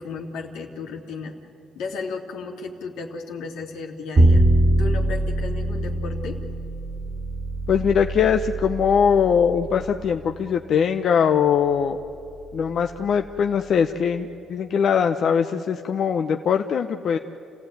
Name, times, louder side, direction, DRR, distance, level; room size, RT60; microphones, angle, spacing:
voice 1, 0.0-1.3 1.8-4.4 4.8-6.4, left 4 dB, 90° left, 1 dB, 2.7 m, -34 dB
Bowed string instrument, 4.2-10.3, right 1 dB, 40° right, 1.8 m, -23 dB
voice 2, 7.7-12.0 12.5-17.2, left 7 dB, 65° left, 6 dB, 0.8 m, -21 dB
29.5 x 16.0 x 9.3 m, 2.9 s
cardioid pair, 90°, 0 cm